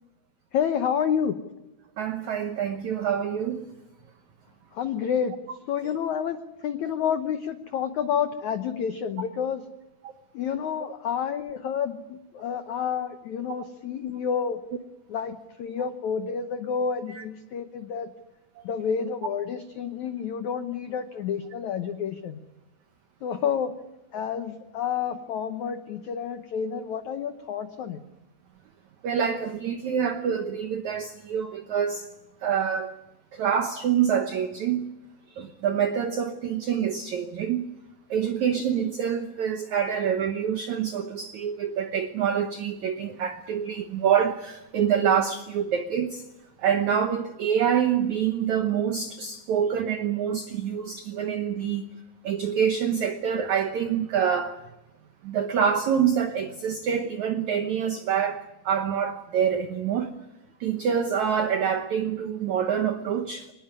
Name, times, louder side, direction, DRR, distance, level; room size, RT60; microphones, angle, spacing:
voice 1, 0.5-1.4 4.7-5.3 5.7-9.6 10.3-14.6 15.1-18.1 18.6-22.4 23.2-23.7 24.1-28.0, left 7 dB, 85° left, 1.6 m, -29 dB
voice 2, 2.0-3.7 29.0-32.1 32.4-32.9 33.3-34.9 35.4-37.7 38.1-46.2 46.6-51.8 52.2-54.6 55.2-60.1 60.6-63.5, right 8 dB, 85° right, 1.6 m, -26 dB
25.0 x 20.0 x 9.8 m
omnidirectional pair, 5.0 m